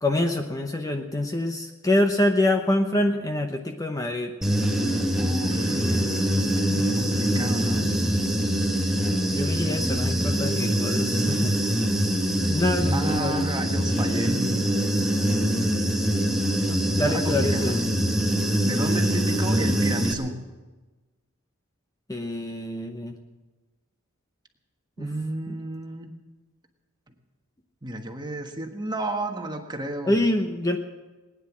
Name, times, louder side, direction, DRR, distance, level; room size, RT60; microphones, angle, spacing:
voice 1, 0.0-4.3 5.7-6.9 9.3-11.5 12.5-13.4 15.0-15.2 16.7-17.8 22.1-23.1 25.0-25.1 25.5-25.6 30.0-30.8, left 1 dB, 15° left, 4 dB, 0.9 m, -26 dB
Human voice / Buzz, 4.4-20.1, equal, ahead, 1.4 m, -24 dB
voice 2, 5.2-5.8 6.9-8.0 12.9-14.4 17.1-17.8 18.6-20.3 25.0-26.1 27.8-30.2, right 2 dB, 20° right, 4 dB, 1.4 m, -32 dB
19.5 x 9.9 x 7.3 m, 1.2 s
head